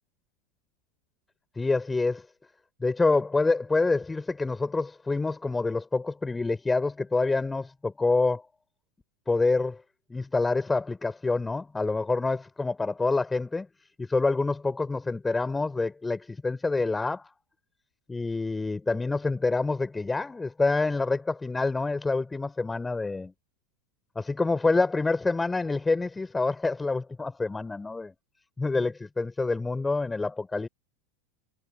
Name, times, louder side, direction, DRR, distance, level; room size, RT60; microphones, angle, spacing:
voice 1, 1.6-2.3 2.8-8.4 9.3-9.8 10.1-13.7 14.0-17.3 18.1-23.3 24.2-28.1 28.6-30.7, left 3 dB, 10° left, 4.2 m, -27 dB
figure-of-eight pair, 85°, 0 cm